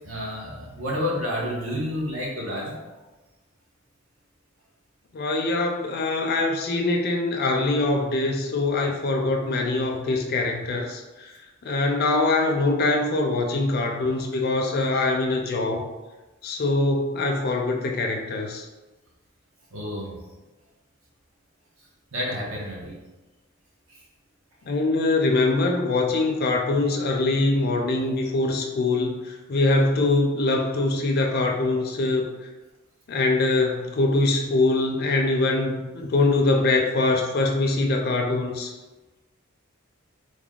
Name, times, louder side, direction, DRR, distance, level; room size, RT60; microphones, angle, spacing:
voice 1, 0.0-2.8 19.7-20.2 22.1-22.9 23.9-24.0, left 1 dB, 70° right, -4 dB, 1.0 m, -30 dB
voice 2, 5.1-11.3 11.6-15.9 16.4-18.6 24.6-32.3 33.1-38.7, left 2 dB, 45° left, 1 dB, 0.4 m, -23 dB
3.4 x 2.2 x 3.6 m, 1.2 s
head